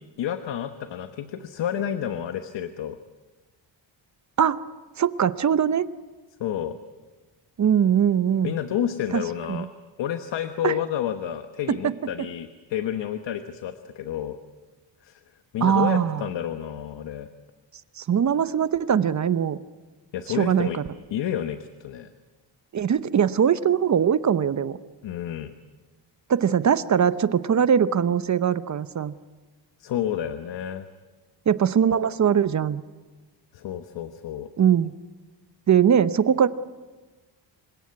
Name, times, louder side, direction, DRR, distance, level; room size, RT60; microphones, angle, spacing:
voice 1, 0.2-3.0 6.4-6.8 8.4-9.7 10.0-14.4 15.0-15.2 15.5-17.3 20.1-20.8 21.1-22.1 25.0-25.5 29.8-30.9 33.5-34.5, left 10 dB, 70° left, 8 dB, 1.3 m, -30 dB
voice 2, 5.0-5.9 7.6-8.5 9.1-9.2 9.5-9.7 10.6-10.8 11.7-11.9 15.6-16.2 18.0-19.6 20.4-20.8 22.7-24.8 26.3-29.1 31.5-32.8 34.6-34.9 35.7-36.5, right 8 dB, 40° right, 14 dB, 0.8 m, -21 dB
27.0 x 17.5 x 9.6 m, 1.3 s
cardioid pair, 125°, 44 cm